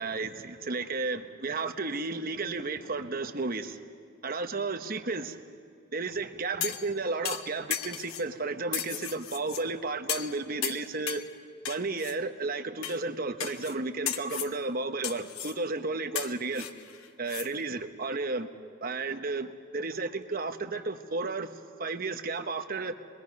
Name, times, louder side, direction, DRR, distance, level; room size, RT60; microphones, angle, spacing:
voice 1, 0.0-3.8 4.2-5.4 5.9-11.2 11.7-16.7 17.2-18.5 18.8-22.9, right 3 dB, 40° right, 7 dB, 1.0 m, -33 dB
sound 1, 6.6-6.9 7.3-8.3 8.7-9.6 10.1-10.4 10.6-11.3 11.7-12.1 12.8-13.0 13.4-13.8 14.1-14.5 15.0-15.6 16.2-17.5 17.8-17.9, left 10 dB, 80° left, 1.0 m, -35 dB
27.5 x 22.0 x 5.3 m, 2.3 s
head